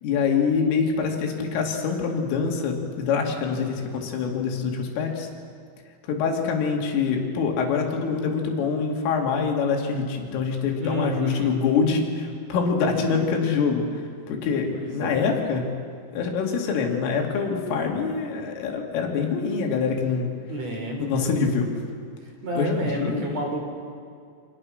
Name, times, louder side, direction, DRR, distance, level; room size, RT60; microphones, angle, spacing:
voice 1, 0.0-5.3 6.0-14.0 14.3-15.7 16.1-20.3 21.0-21.7 22.6-23.3, left 5 dB, 80° left, 1 dB, 5.2 m, -25 dB
voice 2, 10.8-11.6 12.8-13.3 14.7-15.2 20.5-21.3 22.4-23.6, right 1 dB, 35° right, 1 dB, 4.1 m, -31 dB
29.0 x 26.5 x 6.5 m, 2.3 s
omnidirectional pair, 5.7 m